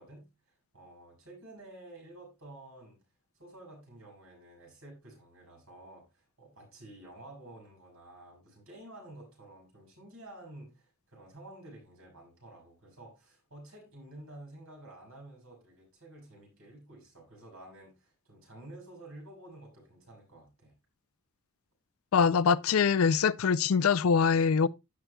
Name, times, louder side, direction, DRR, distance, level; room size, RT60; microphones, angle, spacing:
voice 1, 0.0-3.0 3.4-20.7, right 1 dB, 75° right, 6.8 m, -51 dB
voice 2, 22.1-24.7, left 6 dB, 75° left, 0.4 m, -24 dB
16.0 x 6.7 x 2.3 m
head